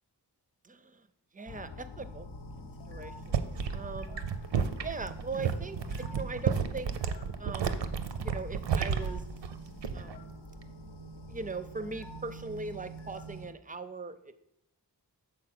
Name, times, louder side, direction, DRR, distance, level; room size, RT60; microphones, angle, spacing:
voice 1, 0.6-1.1 1.3-2.3 2.6-3.4 3.7-4.2 4.8-6.9 7.4-7.8 8.1-9.2 9.9-10.3 11.3-14.4, right 4 dB, 20° right, 12 dB, 0.4 m, -40 dB
sound 1, 1.4-13.5, equal, 70° left, 0.7 m, -46 dB
sound 2, 3.1-10.2 10.5-10.9, right 6 dB, 85° right, 0.6 m, -32 dB
6.5 x 4.1 x 5.9 m, 0.81 s
wide cardioid pair, 80°, 42 cm